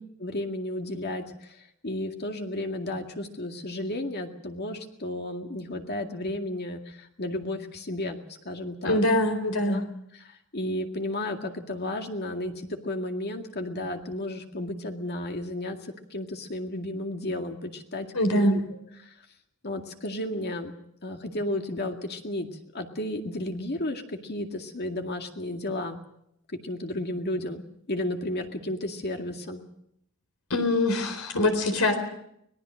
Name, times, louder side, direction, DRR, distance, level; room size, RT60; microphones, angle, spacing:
voice 1, 0.2-1.2 1.8-8.2 8.5-9.0 9.7-9.8 10.5-12.5 12.8-15.8 16.1-18.1 18.3-18.6 19.6-20.7 21.0-22.5 22.7-26.0 26.6-27.6 27.9-29.6, left 1 dB, 50° left, 4 dB, 2.1 m, -33 dB
voice 2, 8.8-9.9 18.1-18.6 30.5-32.0, left 1 dB, 75° left, 7 dB, 4.2 m, -23 dB
24.5 x 19.5 x 6.4 m, 0.75 s
head